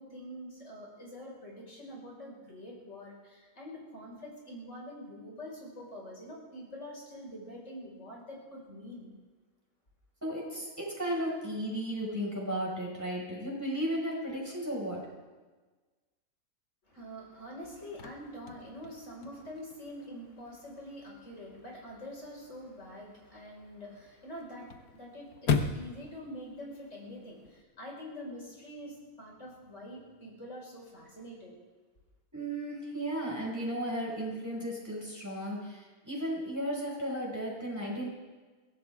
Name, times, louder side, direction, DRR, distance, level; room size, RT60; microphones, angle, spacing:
voice 1, 0.0-9.1 16.8-31.5, equal, 55° left, -3 dB, 5.6 m, -45 dB
voice 2, 10.2-15.0 32.3-38.1, equal, 10° right, -3 dB, 5.4 m, -34 dB
Chirp tweet / Car / Slam, 17.6-27.6, left 6 dB, 90° left, 1.6 m, -39 dB
23.0 x 17.0 x 3.6 m, 1.3 s
omnidirectional pair, 1.5 m